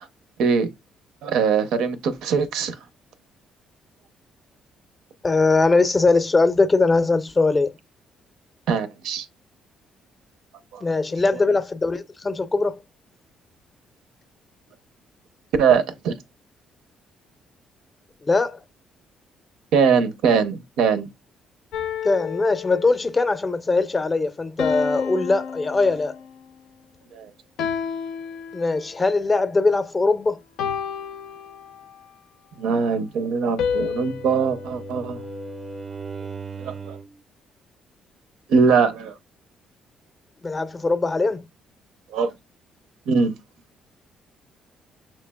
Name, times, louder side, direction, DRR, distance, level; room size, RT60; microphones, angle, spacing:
voice 1, 1.2-2.7 8.7-9.3 10.7-10.8 15.6-16.2 19.7-21.1 27.1-27.3 32.6-35.2 36.6-37.0 38.5-39.1 42.1-42.3 43.1-43.3, right 5 dB, 85° right, 0.6 m, -21 dB
voice 2, 5.2-7.7 10.8-12.8 18.2-18.6 22.0-26.2 28.5-30.4 40.4-41.4, left 3 dB, 25° left, 0.5 m, -21 dB
sound 1, 21.7-23.2 24.6-26.4 27.6-29.0 30.6-32.1 33.6-35.8, left 7 dB, 85° left, 0.5 m, -31 dB
Bowed string instrument, 33.6-37.2, right 5 dB, 30° right, 0.4 m, -38 dB
6.5 x 3.1 x 2.2 m
cardioid pair, 115°, 0 cm